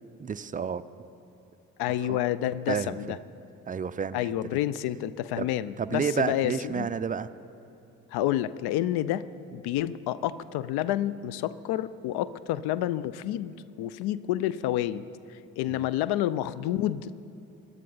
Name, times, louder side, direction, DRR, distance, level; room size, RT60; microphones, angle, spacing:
voice 1, 0.2-0.8 2.0-2.2 2.7-3.2 3.7-4.3 5.4-5.5 5.8-7.3 15.7-15.9, right 6 dB, 20° right, 14 dB, 0.4 m, -30 dB
voice 2, 1.8-3.2 4.1-6.9 8.1-9.3 9.5-13.5 13.8-15.0 15.3-17.2, left 13 dB, 60° left, 17 dB, 0.5 m, -29 dB
21.5 x 11.0 x 3.9 m, 2.9 s
hypercardioid pair, 45°, 43 cm